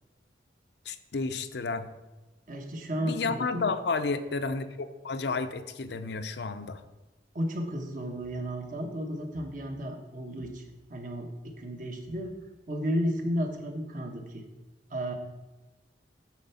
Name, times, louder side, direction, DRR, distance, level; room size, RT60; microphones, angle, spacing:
voice 1, 0.9-1.9 3.0-6.8, left 4 dB, 65° left, 10 dB, 0.6 m, -31 dB
voice 2, 2.5-3.7 7.3-12.3 12.7-14.4 14.9-15.1, equal, 45° right, 3 dB, 1.2 m, -33 dB
9.1 x 4.5 x 7.0 m, 1.1 s
head